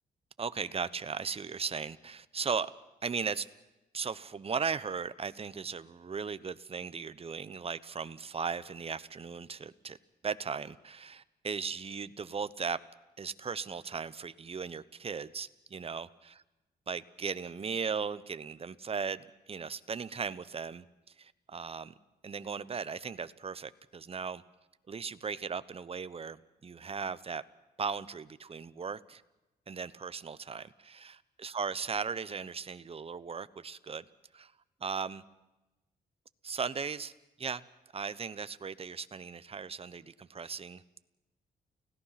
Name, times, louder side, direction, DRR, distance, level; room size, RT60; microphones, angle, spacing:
voice 1, 0.4-2.7 3.0-3.5 3.9-10.0 10.2-12.8 13.2-16.1 16.9-21.9 22.2-24.4 24.9-27.4 27.8-29.2 29.7-34.0 34.3-34.5 34.8-35.2 36.4-37.1 37.4-37.6 37.9-41.0, right 5 dB, 35° right, 15 dB, 1.0 m, -37 dB
29.5 x 17.0 x 5.9 m, 0.99 s
cardioid pair, 95°, 17 cm